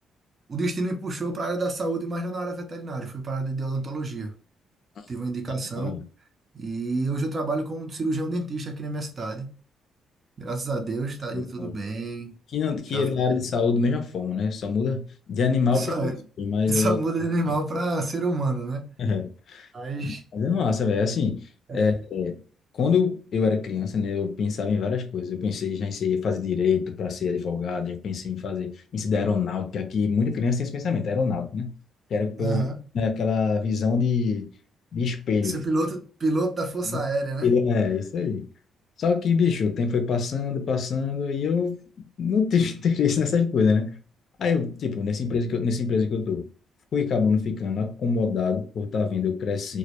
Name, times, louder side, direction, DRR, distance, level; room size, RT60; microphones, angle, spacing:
voice 1, 0.5-4.3 5.1-6.0 6.5-9.5 10.4-12.3 12.9-13.0 13.3-13.4 15.7-16.2 16.7-18.9 19.7-20.2 21.7-21.9 32.4-32.8 35.4-37.5, right 2 dB, 40° right, 0.6 m, -28 dB
voice 2, 11.3-11.7 12.5-16.1 16.4-17.0 19.0-19.7 20.0-21.5 21.7-22.4 22.7-31.7 32.1-32.6 32.9-34.5 34.9-35.6 36.9-37.0 37.4-38.5 39.0-41.8 42.2-44.0 44.4-46.5 46.9-49.8, left 5 dB, 60° left, 0.5 m, -25 dB
2.1 x 2.1 x 2.8 m
cardioid pair, 90°, 0 cm